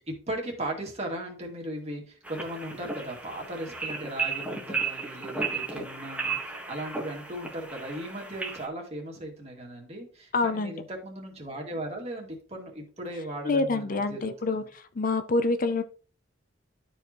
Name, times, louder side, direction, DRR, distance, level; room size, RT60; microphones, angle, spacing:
voice 1, 0.0-14.7, right 1 dB, 35° right, 0 dB, 2.2 m, -37 dB
sound 1, 2.2-8.7, right 4 dB, 5° right, 1.4 m, -34 dB
voice 2, 10.3-10.7 13.4-15.8, left 3 dB, 45° left, 11 dB, 0.5 m, -27 dB
12.5 x 4.7 x 3.0 m, 0.42 s
head